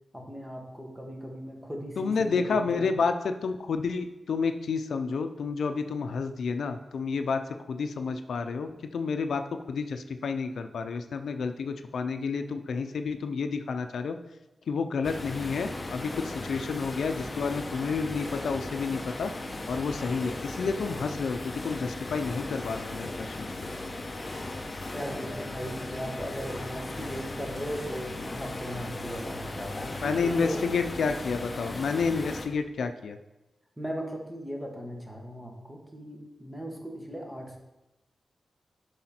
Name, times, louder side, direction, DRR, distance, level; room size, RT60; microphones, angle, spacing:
voice 1, 0.1-2.9 24.9-30.6 33.8-37.6, equal, 10° right, 1 dB, 1.5 m, -38 dB
voice 2, 2.0-7.4 7.7-14.2 14.7-19.3 19.7-23.7 30.0-33.2, left 5 dB, 90° left, 8 dB, 0.5 m, -30 dB
sound 1, 15.0-32.5, left 2 dB, 25° left, 0.9 m, -37 dB
11.5 x 4.9 x 4.3 m, 0.98 s
wide cardioid pair, 140°, 0 cm